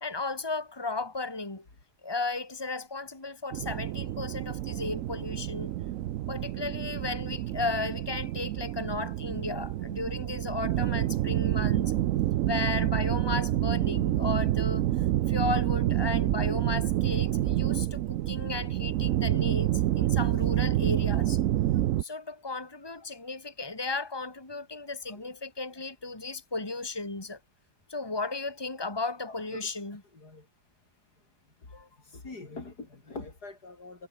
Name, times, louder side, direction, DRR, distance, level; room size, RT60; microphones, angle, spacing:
voice 1, 0.0-1.7 2.0-5.7 6.3-11.9 12.5-14.9 15.3-21.4 22.0-27.4 27.9-30.0 31.7-31.9, left 3 dB, 15° left, 2.8 m, -35 dB
sound 1, 3.5-22.0, right 13 dB, 65° right, 0.9 m, -28 dB
voice 2, 29.3-29.6 30.1-30.4 32.1-34.1, left 3 dB, 70° left, 4.8 m, -44 dB
omnidirectional pair, 1.7 m